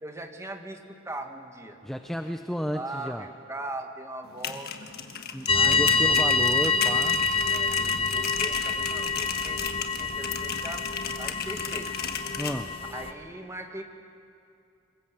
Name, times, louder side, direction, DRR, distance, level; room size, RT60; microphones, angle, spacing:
voice 1, 0.0-1.8 2.7-4.7 5.5-6.0 7.5-10.9 11.2-11.9 12.9-13.8, right 2 dB, 15° right, 4 dB, 1.9 m, -40 dB
voice 2, 1.8-3.3 5.3-7.2 12.3-12.7, equal, ahead, 6 dB, 0.6 m, -32 dB
sound 1, 4.2-12.6, left 7 dB, 50° left, 1.5 m, -35 dB
sound 2, 5.5-13.1, left 4 dB, 30° left, 1.2 m, -26 dB
26.5 x 23.0 x 7.6 m, 2.5 s
head